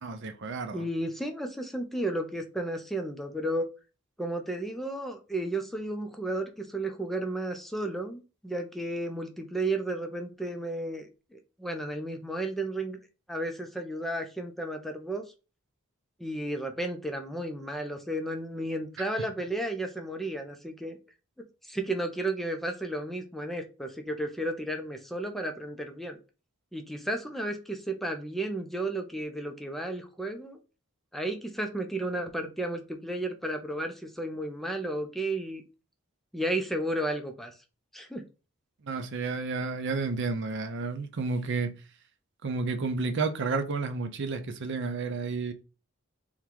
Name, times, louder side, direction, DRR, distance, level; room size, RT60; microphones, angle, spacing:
voice 1, 0.0-0.8 38.8-41.7 42.4-45.5, right 4 dB, 60° right, 0.6 m, -31 dB
voice 2, 0.7-3.7 4.2-13.0 13.3-15.2 16.2-21.0 21.7-26.2 26.7-30.6 31.1-35.6 36.3-37.5 37.9-38.2, right 1 dB, ahead, 0.5 m, -33 dB
3.7 x 2.2 x 4.5 m
head